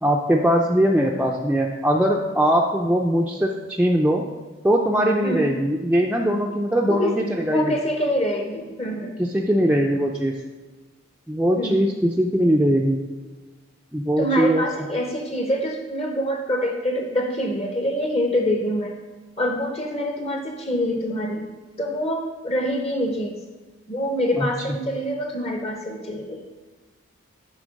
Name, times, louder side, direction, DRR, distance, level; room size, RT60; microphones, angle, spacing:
voice 1, 0.0-4.2 4.6-7.8 9.2-10.3 11.3-13.0 13.9-14.6 24.4-24.5, equal, 5° right, -1 dB, 0.3 m, -21 dB
voice 2, 5.2-5.5 6.9-9.1 11.5-11.8 14.2-18.9 19.4-21.5 21.8-23.4 23.9-26.4, equal, 30° left, 2 dB, 0.6 m, -25 dB
9.7 x 3.8 x 5.1 m, 1.3 s
head